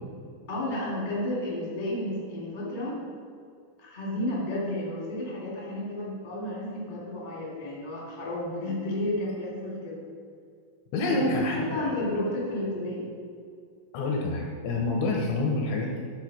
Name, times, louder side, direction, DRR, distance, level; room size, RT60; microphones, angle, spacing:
voice 1, 0.5-3.0 3.8-10.0 11.1-11.2 11.5-13.1, left 1 dB, 30° left, -5 dB, 0.8 m, -32 dB
voice 2, 10.9-11.8 13.9-16.0, left 2 dB, 75° left, 0 dB, 2.8 m, -27 dB
12.0 x 4.3 x 6.2 m, 2.2 s
omnidirectional pair, 6.0 m